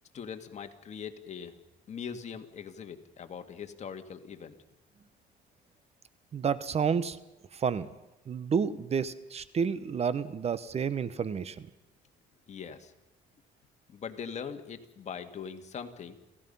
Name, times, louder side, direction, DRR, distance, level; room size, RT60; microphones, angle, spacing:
voice 1, 0.1-1.5 1.9-4.5 12.5-12.9 13.9-16.2, left 7 dB, 45° left, 7 dB, 2.0 m, -41 dB
voice 2, 6.3-7.2 7.5-7.9 8.3-11.7, right 6 dB, 40° right, 15 dB, 1.0 m, -30 dB
28.5 x 16.5 x 5.6 m, 0.97 s
cardioid pair, 110°, 17 cm